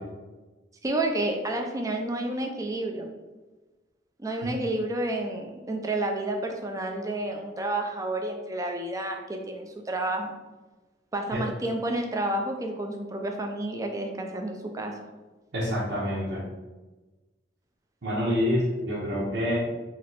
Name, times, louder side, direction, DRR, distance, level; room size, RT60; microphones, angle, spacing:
voice 1, 0.8-3.1 4.2-10.3 11.1-14.9, right 1 dB, 20° right, 3 dB, 0.4 m, -30 dB
voice 2, 15.5-16.4 18.0-19.6, equal, 85° right, -9 dB, 1.0 m, -27 dB
3.1 x 2.8 x 4.2 m, 1.2 s
head